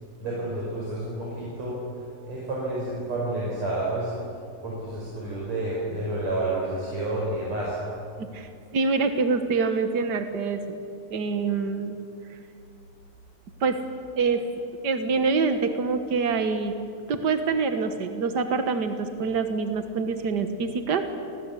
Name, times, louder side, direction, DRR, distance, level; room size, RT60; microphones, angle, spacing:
voice 1, 0.2-1.8 2.2-4.1 4.6-7.8, right 2 dB, 50° right, -5 dB, 6.3 m, -30 dB
voice 2, 8.2-10.8 11.1-11.9 13.6-13.8 14.2-14.4 14.8-16.7 17.1-21.0, right 4 dB, 80° right, 7 dB, 0.9 m, -25 dB
29.5 x 20.5 x 8.4 m, 2.5 s
omnidirectional pair, 4.1 m